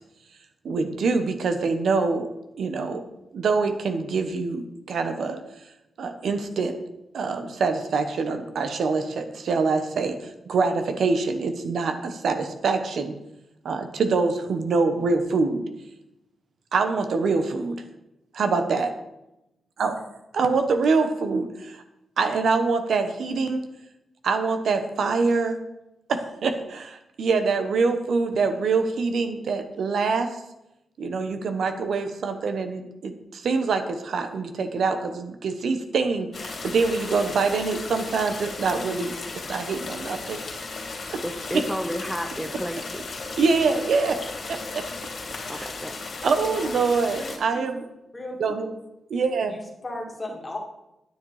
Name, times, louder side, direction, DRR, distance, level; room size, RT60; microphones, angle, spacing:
voice 1, 0.6-2.3 2.6-3.0 3.3-5.4 6.0-6.8 7.1-13.1 13.6-15.7 16.7-17.8 18.3-18.9 19.8-19.9 20.3-21.8 22.2-23.6 24.2-25.6 26.1-30.4 31.0-39.1 39.5-40.4 43.4-44.2 44.5-44.8 45.5-45.7 46.2-47.9 48.4-48.7 49.1-49.6, right 4 dB, 70° right, 7 dB, 1.1 m, -25 dB
sound 1, 36.3-47.4, left 3 dB, 50° left, 2.8 m, -36 dB
voice 2, 41.2-43.0 45.5-46.0, equal, ahead, 5 dB, 0.7 m, -32 dB
voice 3, 47.2-47.8 48.1-48.6 49.5-50.6, left 1 dB, 20° left, -1 dB, 2.5 m, -36 dB
9.9 x 9.7 x 4.9 m, 0.90 s
wide cardioid pair, 145°, 0 cm